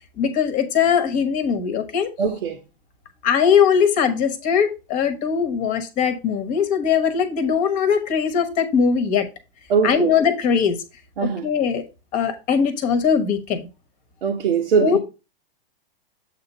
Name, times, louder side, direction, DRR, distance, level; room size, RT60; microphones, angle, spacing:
voice 1, 0.2-2.1 3.2-9.3 9.8-10.8 11.2-11.8 12.1-13.7 14.8-15.0, left 7 dB, 25° left, 1.1 m, -20 dB
voice 2, 2.2-2.6 9.7-10.2 11.2-11.5 14.2-15.0, right 6 dB, 75° right, 1.1 m, -21 dB
7.7 x 2.9 x 5.4 m
hypercardioid pair, 145°, 30 cm